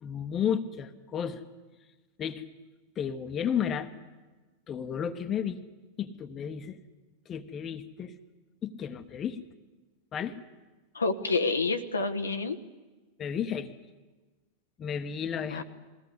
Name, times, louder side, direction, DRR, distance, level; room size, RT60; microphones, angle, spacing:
voice 1, 0.0-1.4 2.2-2.4 3.0-3.9 4.7-5.6 6.0-6.8 7.3-8.1 8.6-9.4 10.1-10.4 13.2-13.7 14.8-15.6, left 8 dB, 25° left, 9 dB, 1.2 m, -32 dB
voice 2, 10.9-12.6 15.5-15.6, left 3 dB, 75° left, 6 dB, 1.0 m, -28 dB
21.0 x 16.5 x 9.6 m, 1.2 s
figure-of-eight pair, 90°, 0 cm